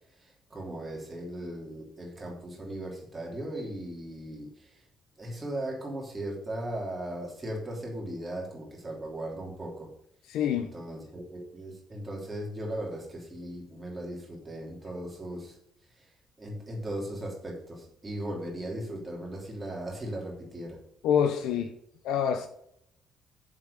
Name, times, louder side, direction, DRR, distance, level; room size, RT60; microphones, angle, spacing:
voice 1, 0.1-4.8 5.2-9.9 10.5-15.6 15.9-20.8, right 1 dB, 15° right, 3.2 m, -38 dB
voice 2, 10.3-10.7 21.0-21.7 22.0-22.5, left 8 dB, 85° left, 0.8 m, -26 dB
7.7 x 7.3 x 6.7 m
cardioid pair, 170°, 0 cm